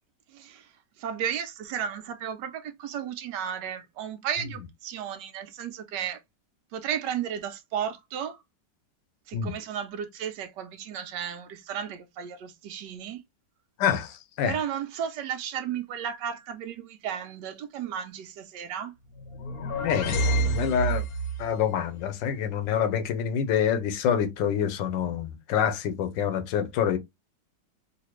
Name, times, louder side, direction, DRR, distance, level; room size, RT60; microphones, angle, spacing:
voice 1, 0.3-0.7 1.0-6.2 6.7-8.4 9.3-13.2 14.5-18.9, right 8 dB, 75° right, 1.2 m, -34 dB
voice 2, 13.8-14.6 19.8-21.0 21.4-27.0, left 8 dB, 80° left, 1.3 m, -26 dB
sound 1, 19.2-21.5, right 2 dB, 65° left, 1.1 m, -28 dB
4.0 x 2.4 x 3.0 m
omnidirectional pair, 2.0 m